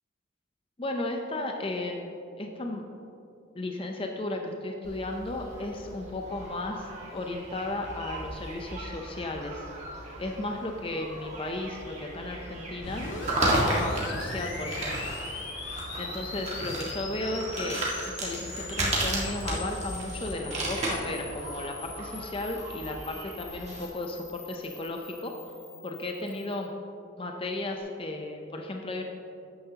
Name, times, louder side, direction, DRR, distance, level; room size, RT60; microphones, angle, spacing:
voice 1, 0.8-2.9 3.5-9.7 10.2-15.1 16.0-17.8 18.2-25.3 25.8-26.7 27.2-29.0, left 2 dB, 25° left, 3 dB, 0.5 m, -34 dB
sound 1, 4.8-23.8, right 1 dB, 35° right, 1.7 m, -34 dB
sound 2, 12.8-26.7, left 3 dB, 75° left, 1.6 m, -41 dB
12.5 x 9.4 x 2.9 m, 2.7 s
head